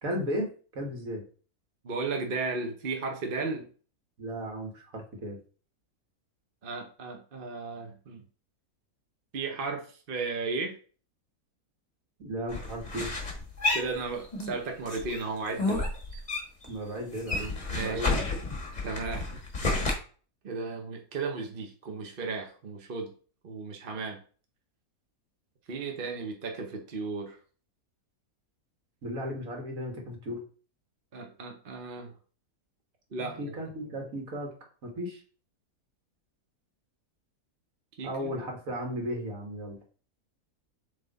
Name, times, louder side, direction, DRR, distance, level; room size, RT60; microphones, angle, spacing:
voice 1, 0.0-1.2 4.2-5.4 12.2-13.1 16.7-18.3 29.0-30.4 33.2-34.5 34.8-35.2 38.0-39.8, equal, 65° right, 2 dB, 1.9 m, -35 dB
voice 2, 1.8-3.7 6.6-8.2 9.3-10.7 13.7-15.9 17.7-18.0 18.8-19.3 19.6-19.8 20.4-23.1 23.4-24.2 25.7-27.4 31.1-32.1 33.1-33.5 38.0-38.3, right 4 dB, 40° right, 2 dB, 1.0 m, -35 dB
sound 1, 12.5-14.6 14.9-16.7 17.0-19.9, left 2 dB, 30° left, 1.6 m, -31 dB
7.1 x 3.6 x 4.0 m, 0.40 s
omnidirectional pair, 1.6 m